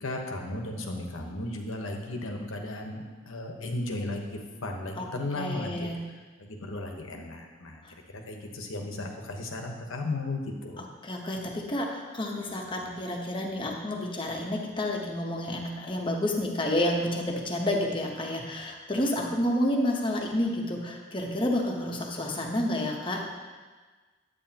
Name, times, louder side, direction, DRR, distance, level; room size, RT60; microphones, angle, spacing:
voice 1, 0.0-5.9 6.4-7.8 8.1-10.9, left 2 dB, 80° left, 2 dB, 1.1 m, -35 dB
voice 2, 5.3-6.0 7.8-7.9 10.8-23.2, left 1 dB, 25° left, 0 dB, 0.9 m, -30 dB
11.0 x 8.4 x 2.9 m, 1.4 s
head